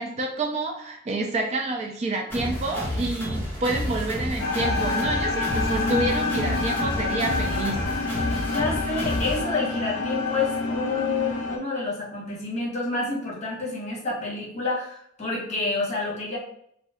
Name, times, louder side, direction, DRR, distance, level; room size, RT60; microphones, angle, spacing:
voice 1, 0.0-7.8, right 2 dB, 35° right, 2 dB, 0.4 m, -28 dB
sound 1, 2.3-9.4, left 1 dB, 10° left, 1.0 m, -30 dB
sound 2, 4.4-11.6, left 3 dB, 75° left, 0.4 m, -27 dB
voice 2, 8.5-16.4, left 3 dB, 35° left, -4 dB, 1.0 m, -28 dB
2.6 x 2.3 x 3.3 m, 0.67 s
head